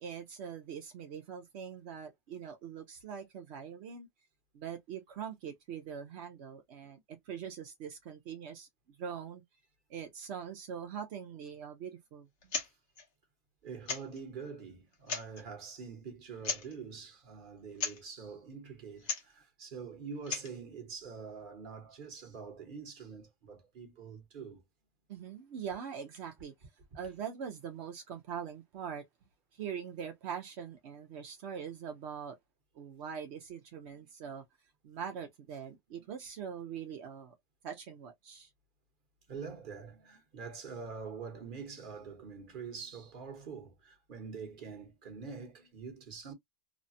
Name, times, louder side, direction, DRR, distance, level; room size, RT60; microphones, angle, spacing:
voice 1, 0.0-4.1 4.5-8.7 9.0-9.4 9.9-12.3 25.1-26.5 26.9-29.0 29.5-32.4 32.7-34.4 34.8-37.3 37.6-38.5, right 7 dB, 85° right, 0.6 m, -42 dB
sound 1, 12.4-12.7 13.0-13.1 13.9-14.2 14.9-15.4 16.4-16.8 17.8-18.0 19.0-19.3 20.1-20.6, left 5 dB, 50° left, 0.9 m, -36 dB
voice 2, 13.6-24.6 27.0-27.1 33.9-34.0 35.9-36.0 39.3-46.3, right 5 dB, 40° right, 0.9 m, -45 dB
3.2 x 2.1 x 2.5 m
omnidirectional pair, 1.9 m